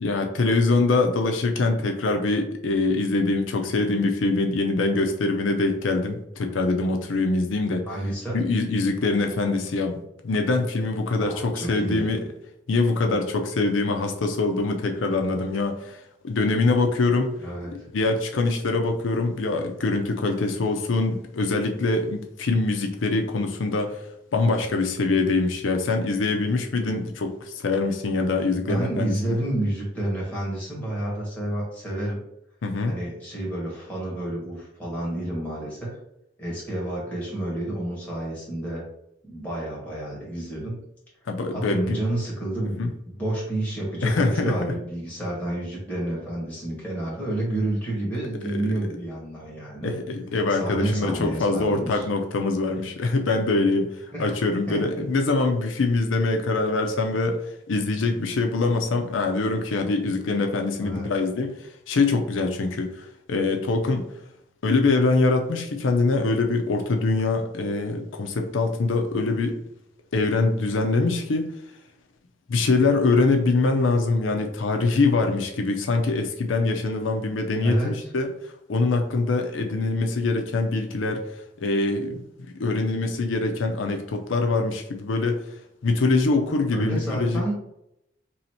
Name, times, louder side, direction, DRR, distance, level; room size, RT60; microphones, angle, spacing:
voice 1, 0.0-7.8 8.3-10.0 10.2-12.2 12.7-17.4 17.9-24.1 24.3-29.4 32.6-32.9 41.3-42.0 42.8-42.9 44.0-44.7 48.4-48.6 49.8-64.1 64.6-69.6 70.1-71.5 72.5-82.2 82.6-85.4 85.8-87.4, left 3 dB, 90° left, 4 dB, 0.5 m, -24 dB
voice 2, 7.9-8.4 11.2-12.1 17.4-17.7 28.5-32.2 32.9-35.9 36.4-38.8 39.2-40.8 41.5-49.9 50.5-52.0 54.1-54.3 54.7-54.8 60.8-61.0 77.6-78.1 86.7-87.5, right 1 dB, 10° left, -5 dB, 1.5 m, -29 dB
3.1 x 2.8 x 4.2 m, 0.80 s
head